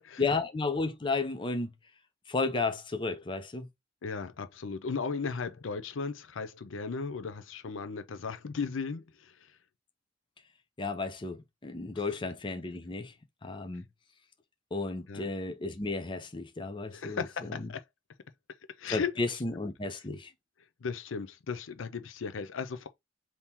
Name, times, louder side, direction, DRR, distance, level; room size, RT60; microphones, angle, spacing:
voice 1, 0.2-1.7 2.3-3.7 10.8-13.1 13.4-13.8 14.7-17.7 18.9-20.3, left 3 dB, 25° left, 0.6 m, -33 dB
voice 2, 4.0-9.3 15.1-15.3 16.9-17.8 18.8-19.1 20.8-22.9, left 5 dB, 75° left, 0.5 m, -36 dB
3.6 x 2.8 x 4.2 m
head